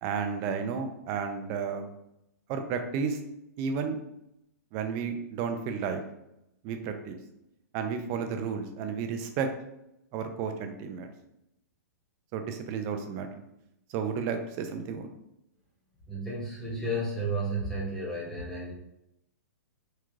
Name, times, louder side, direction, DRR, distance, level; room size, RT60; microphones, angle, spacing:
voice 1, 0.0-1.9 2.5-3.2 3.6-4.0 4.7-6.0 6.6-7.2 7.7-9.5 10.1-11.1 12.3-13.3 13.9-15.1, right 6 dB, 30° right, 6 dB, 0.4 m, -32 dB
voice 2, 16.1-18.7, right 1 dB, 5° left, -5 dB, 0.8 m, -32 dB
3.7 x 2.3 x 3.1 m, 0.84 s
hypercardioid pair, 155°, 10 cm